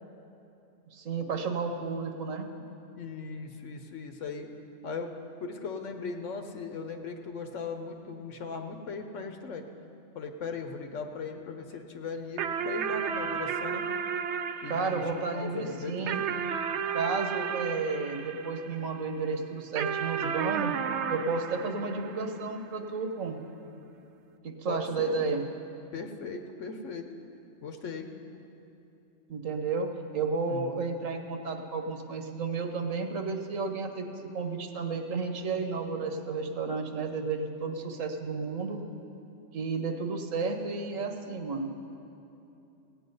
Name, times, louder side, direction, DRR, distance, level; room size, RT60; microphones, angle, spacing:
voice 1, 0.9-2.5 14.7-16.2 16.9-20.7 21.1-23.4 24.4-25.4 29.3-34.1 34.3-38.8 39.5-41.7, right 4 dB, 85° right, 5 dB, 1.4 m, -32 dB
voice 2, 2.6-4.5 4.8-5.1 5.4-9.7 10.1-13.8 14.6-16.3 24.7-25.3 25.9-27.0 27.6-28.1 30.5-30.7, left 4 dB, 75° left, 5 dB, 1.1 m, -38 dB
sound 1, 12.4-19.1 19.8-22.6, right 7 dB, 70° right, 0.8 m, -33 dB
17.5 x 8.6 x 5.4 m, 2.8 s
omnidirectional pair, 1.3 m